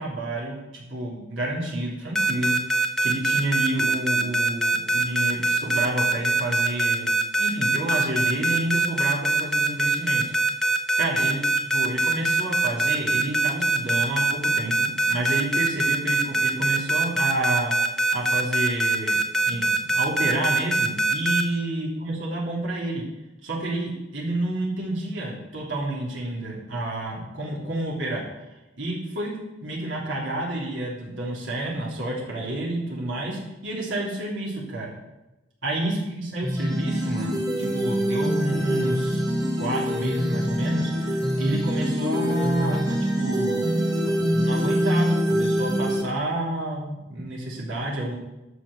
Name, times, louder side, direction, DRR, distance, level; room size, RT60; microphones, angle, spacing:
voice 1, 0.0-7.1 7.4-10.3 11.0-19.2 19.4-23.0 23.4-28.2 28.8-34.9 35.6-39.2 39.6-43.7 44.0-48.2, right 1 dB, 75° right, -4 dB, 3.4 m, -29 dB
sound 1, 2.1-21.4, right 2 dB, 5° left, 0.7 m, -22 dB
sound 2, 36.4-46.0, equal, 20° right, 1.2 m, -24 dB
13.0 x 5.1 x 6.6 m, 0.98 s
head